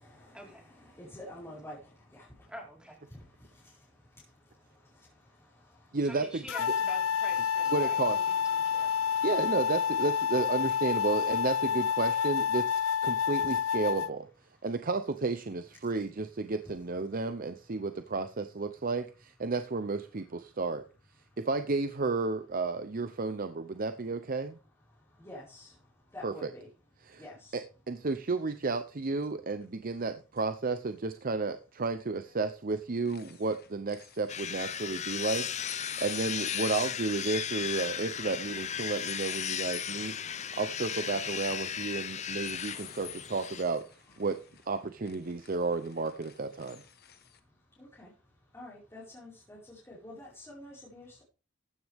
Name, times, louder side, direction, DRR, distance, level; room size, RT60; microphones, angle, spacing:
voice 1, 0.2-2.5 3.1-6.0 8.6-9.3 24.9-26.7 27.2-27.6 47.8-48.1 48.5-51.2, left 1 dB, 15° left, 5.0 m, -50 dB
voice 2, 2.5-3.0 6.0-8.9, right 1 dB, 5° right, 4.3 m, -46 dB
voice 3, 5.9-6.4 7.7-8.2 9.2-14.3 14.6-20.8 21.4-24.6 26.2-26.5 27.0-27.3 27.5-27.6 27.9-43.8 44.2-44.4 44.7-46.8, right 3 dB, 45° right, 0.7 m, -32 dB
sound 1, 6.5-14.1, left 7 dB, 85° left, 0.6 m, -29 dB
sound 2, 30.4-30.5 32.2-32.5 32.8-35.2 35.6-47.4, left 11 dB, 50° left, 1.3 m, -49 dB
sound 3, 34.3-43.6, left 8 dB, 35° left, 0.6 m, -36 dB
14.5 x 9.4 x 3.6 m
head